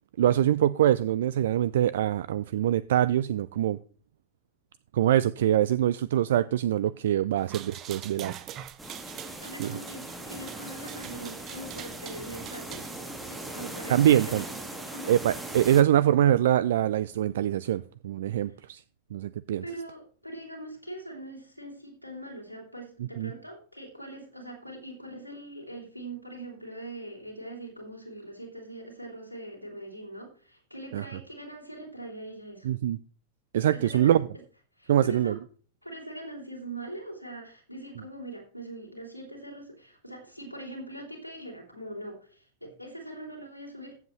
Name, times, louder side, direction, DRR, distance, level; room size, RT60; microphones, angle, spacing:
voice 1, 0.2-3.8 4.9-8.3 9.6-9.8 13.9-14.4 15.1-18.8 19.1-19.6 23.2-23.3 30.9-31.0 32.6-33.0 33.5-34.3 34.9-35.4, right 11 dB, 60° right, 0.3 m, -24 dB
sound 1, 7.4-12.9, right 10 dB, 30° right, 0.8 m, -44 dB
sound 2, 8.8-15.8, right 2 dB, 10° right, 1.8 m, -39 dB
voice 2, 9.4-12.9 13.2-15.1 19.6-32.7 33.7-34.2 34.8-35.4 35.8-43.9, right 1 dB, 90° right, 3.1 m, -42 dB
14.5 x 7.8 x 3.1 m
figure-of-eight pair, 90°, 0 cm